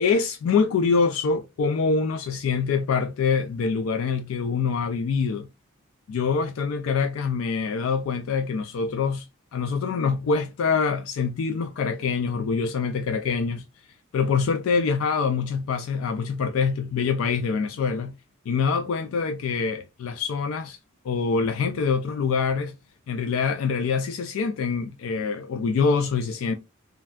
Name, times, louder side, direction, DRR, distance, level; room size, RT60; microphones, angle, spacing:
voice 1, 0.0-5.5 6.1-13.6 14.1-18.1 18.5-20.8 21.0-22.7 23.1-26.5, left 5 dB, 70° left, 0.3 m, -25 dB
3.2 x 2.5 x 2.2 m
head